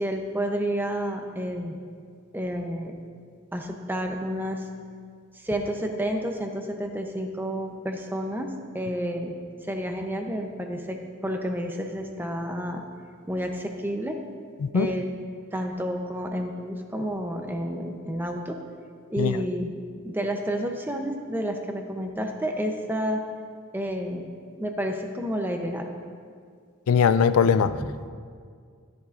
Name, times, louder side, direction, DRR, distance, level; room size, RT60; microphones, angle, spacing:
voice 1, 0.0-1.8 2.3-3.0 3.5-4.6 5.3-9.3 9.7-12.8 13.3-14.2 14.7-15.1 15.5-18.6 19.1-19.7 20.0-23.2 23.7-24.3 24.5-25.9 27.7-27.9, equal, 10° right, 3 dB, 0.7 m, -30 dB
voice 2, 26.9-27.7, left 6 dB, 80° left, 13 dB, 0.4 m, -20 dB
13.5 x 10.5 x 2.5 m, 2.1 s
head